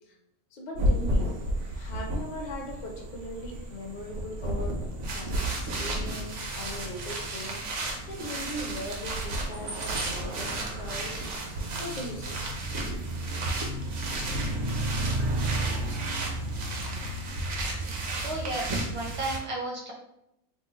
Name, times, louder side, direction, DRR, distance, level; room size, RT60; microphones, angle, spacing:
voice 1, 0.5-1.3 1.7-7.7 8.1-11.3 11.8-12.4, equal, 45° left, 0 dB, 0.6 m, -39 dB
sound 1, 0.8-19.4, right 1 dB, 70° right, 1.0 m, -31 dB
voice 2, 18.2-19.9, right 1 dB, 40° right, -1 dB, 0.4 m, -32 dB
2.9 x 2.3 x 3.8 m, 0.81 s
omnidirectional pair, 1.3 m